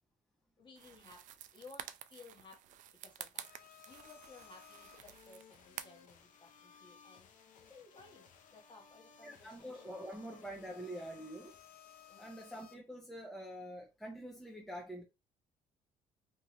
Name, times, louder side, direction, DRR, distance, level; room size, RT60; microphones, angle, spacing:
voice 1, 0.6-1.2 1.5-2.8 3.0-10.0 10.2-10.3 12.1-12.3, left 3 dB, 35° left, 1.2 m, -58 dB
sound 1, 0.8-6.1, right 11 dB, 65° right, 0.4 m, -50 dB
sound 2, 3.4-12.7, left 7 dB, 65° left, 0.7 m, -59 dB
voice 2, 9.2-11.5 12.2-15.0, equal, ahead, 0.7 m, -46 dB
2.7 x 2.6 x 3.0 m
cardioid pair, 100°, 14 cm